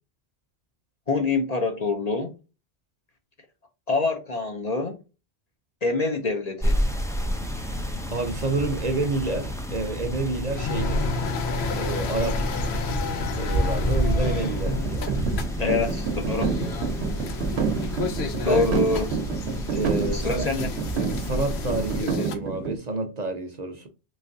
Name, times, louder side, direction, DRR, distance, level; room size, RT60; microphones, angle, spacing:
voice 1, 1.1-2.3 3.9-5.0 5.8-6.7 15.6-16.6 18.4-19.1 20.1-20.7, left 3 dB, 45° left, 0.6 m, -25 dB
sound 1, 6.6-22.0, equal, 5° left, 0.3 m, -29 dB
voice 2, 8.1-11.0 11.7-12.5 13.4-15.2 18.4-18.7 19.6-20.6 21.1-23.9, right 2 dB, 45° right, 0.7 m, -29 dB
sound 2, 10.5-22.4, left 5 dB, 80° left, 0.9 m, -33 dB
sound 3, 14.2-22.8, right 5 dB, 85° right, 1.0 m, -29 dB
3.3 x 3.2 x 2.6 m
omnidirectional pair, 1.1 m